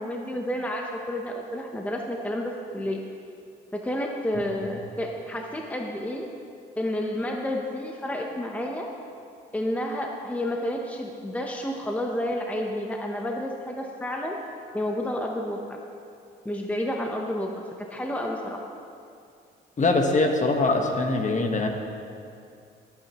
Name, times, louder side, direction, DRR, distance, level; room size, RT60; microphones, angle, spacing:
voice 1, 0.0-3.0 3.7-6.3 6.8-8.9 9.5-14.4 14.7-15.8 16.4-17.5 17.8-18.6, left 1 dB, 5° left, 1 dB, 0.9 m, -30 dB
voice 2, 19.8-21.7, left 3 dB, 40° left, 3 dB, 1.4 m, -22 dB
18.5 x 8.8 x 3.1 m, 2.4 s
cardioid pair, 90°, 20 cm